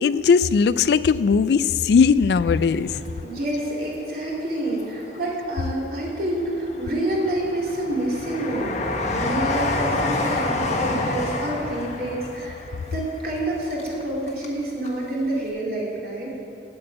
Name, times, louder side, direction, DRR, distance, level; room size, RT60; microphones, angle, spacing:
voice 1, 0.0-3.0, left 5 dB, 60° left, 15 dB, 0.3 m, -18 dB
Train, 2.6-3.9 4.3-5.3 5.8-14.6 14.8-14.9, left 2 dB, 40° left, 1.3 m, -29 dB
voice 2, 3.2-12.6 12.9-16.3, right 1 dB, 55° right, -4 dB, 2.8 m, -28 dB
8.7 x 8.7 x 7.9 m, 2.5 s
head